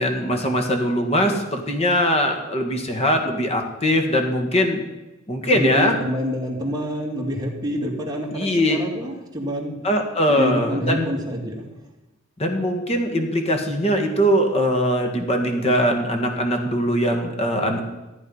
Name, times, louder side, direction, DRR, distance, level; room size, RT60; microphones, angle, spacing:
voice 1, 0.0-4.8 5.3-5.9 8.3-8.8 9.8-11.1 12.4-17.8, equal, 30° left, 4 dB, 1.8 m, -21 dB
voice 2, 5.5-9.8 10.3-11.6, equal, 20° right, -1 dB, 2.4 m, -27 dB
14.5 x 9.1 x 5.6 m, 1.0 s
head